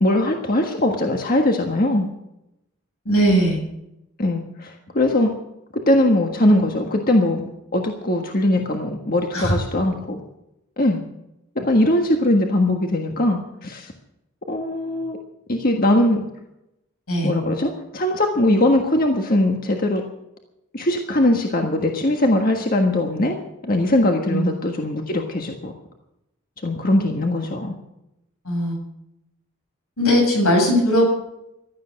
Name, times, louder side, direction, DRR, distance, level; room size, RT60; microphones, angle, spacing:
voice 1, 0.0-2.1 4.2-5.3 5.7-7.4 7.7-10.2 10.8-11.0 11.5-13.9 14.5-15.2 15.5-16.2 17.2-20.0 20.7-23.4 23.6-25.7 26.6-27.8, left 1 dB, 40° left, 3 dB, 1.5 m, -20 dB
voice 2, 3.0-3.6 9.3-9.6 17.1-17.3 24.3-24.5 28.4-28.8 30.0-31.1, equal, 85° left, 1 dB, 7.4 m, -19 dB
16.0 x 12.5 x 6.4 m, 0.85 s
head